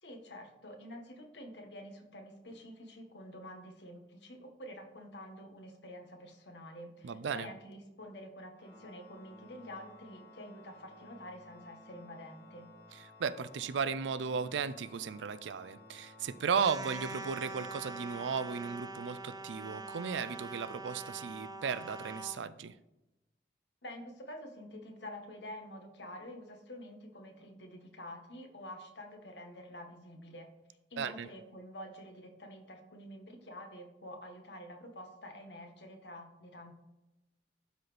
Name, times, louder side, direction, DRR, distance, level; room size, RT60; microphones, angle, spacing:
voice 1, 0.0-12.7 23.8-30.5 30.9-36.7, left 1 dB, 75° left, 4 dB, 1.4 m, -48 dB
voice 2, 7.0-7.5 12.9-22.7 31.0-31.3, right 6 dB, 90° right, 15 dB, 0.4 m, -35 dB
Organ, 8.6-19.5, left 2 dB, 15° left, 1.0 m, -56 dB
sound 1, 16.6-22.4, right 3 dB, 20° right, 0.5 m, -44 dB
12.0 x 4.1 x 3.3 m, 0.97 s
head